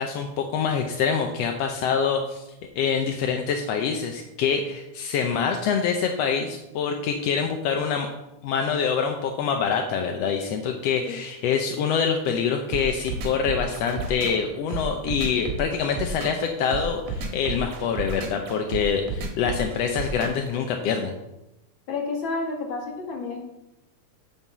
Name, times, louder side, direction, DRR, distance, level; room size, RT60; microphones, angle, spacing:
voice 1, 0.0-2.4 2.8-8.1 8.4-21.2, left 6 dB, 75° left, 4 dB, 1.5 m, -25 dB
sound 1, 12.7-20.5, right 3 dB, 75° right, 2.8 m, -32 dB
voice 2, 21.9-23.4, left 3 dB, 45° left, -1 dB, 2.3 m, -30 dB
7.6 x 5.5 x 7.2 m, 0.93 s
omnidirectional pair, 3.6 m